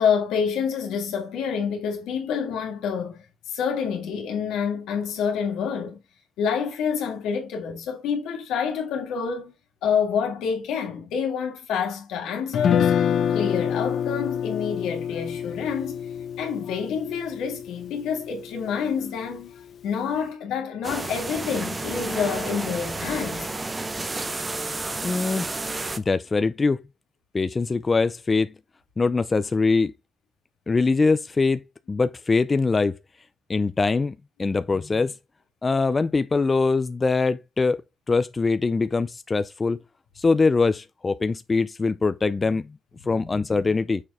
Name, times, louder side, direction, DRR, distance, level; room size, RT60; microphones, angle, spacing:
voice 1, 0.0-6.0 6.4-9.5 9.8-12.9 13.3-16.0 16.4-23.5 43.0-43.4, left 7 dB, 90° left, 2.0 m, -28 dB
Guitar, 12.5-18.7, left 8 dB, 65° left, 0.9 m, -26 dB
sound 1, 20.8-26.0, right 2 dB, 25° right, 0.8 m, -31 dB
voice 2, 25.0-25.4 26.0-26.8 27.3-28.5 29.0-29.9 30.7-31.6 31.9-32.9 33.5-34.1 34.4-35.1 35.6-37.8 38.1-39.8 40.2-42.7 43.1-44.0, left 4 dB, 30° left, 0.4 m, -22 dB
6.5 x 4.6 x 3.6 m
cardioid pair, 90°, 0 cm